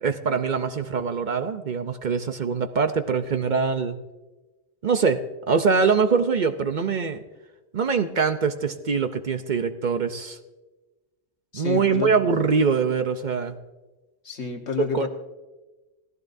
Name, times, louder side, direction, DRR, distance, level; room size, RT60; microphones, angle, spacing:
voice 1, 0.0-4.0 4.8-5.2 5.5-7.2 7.7-10.4 11.5-13.5 14.9-15.1, right 5 dB, 50° right, 8 dB, 0.7 m, -23 dB
voice 2, 11.5-12.1 14.2-15.1, left 6 dB, 85° left, 4 dB, 1.6 m, -29 dB
18.0 x 15.0 x 2.6 m, 1.2 s
omnidirectional pair, 1.1 m